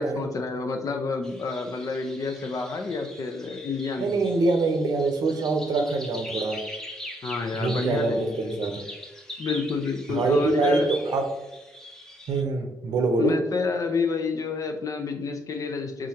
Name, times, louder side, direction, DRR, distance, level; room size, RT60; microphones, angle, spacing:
voice 1, 0.0-4.2 7.2-8.6 9.4-10.9 13.2-16.1, left 4 dB, 60° left, 4 dB, 0.7 m, -29 dB
sound 1, 1.2-12.4, equal, 10° left, 0.7 m, -41 dB
voice 2, 4.0-6.6 7.6-8.8 10.1-11.2 12.3-13.3, right 3 dB, 90° right, 4 dB, 0.7 m, -24 dB
4.9 x 3.7 x 2.9 m, 1.0 s
cardioid pair, 80°, 7 cm